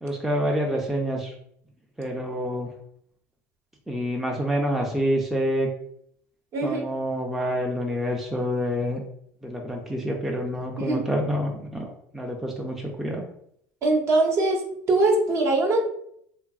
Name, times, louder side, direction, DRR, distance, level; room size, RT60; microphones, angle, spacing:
voice 1, 0.0-1.3 2.0-2.7 3.9-5.7 6.6-9.0 9.4-11.9 12.1-13.3, equal, 5° right, -1 dB, 0.4 m, -27 dB
voice 2, 13.8-14.6 14.9-15.8, right 2 dB, 45° right, 1 dB, 0.7 m, -21 dB
2.9 x 2.4 x 2.3 m, 0.70 s
supercardioid pair, 105°, 7 cm